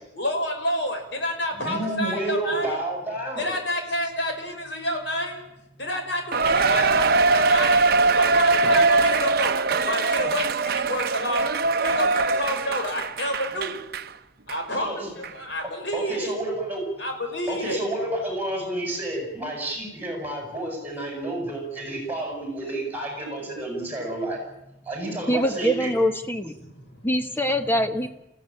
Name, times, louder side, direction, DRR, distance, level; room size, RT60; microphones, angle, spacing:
voice 1, 0.1-2.8 3.4-7.9 8.1-9.6 9.8-13.8 14.5-16.3 17.0-17.8 26.6-27.0 27.3-27.4, left 1 dB, 65° left, 4 dB, 5.4 m, -29 dB
voice 2, 1.6-3.5 14.8-15.1 15.9-16.8 17.5-24.4 24.9-26.1, right 1 dB, 10° right, 2 dB, 7.9 m, -30 dB
Cheering, 6.3-14.1 14.5-14.6 15.2-15.3, right 3 dB, 50° right, 0.9 m, -22 dB
voice 3, 25.3-26.5 27.0-28.1, equal, 10° left, 7 dB, 1.5 m, -23 dB
28.5 x 16.0 x 8.9 m, 0.90 s
head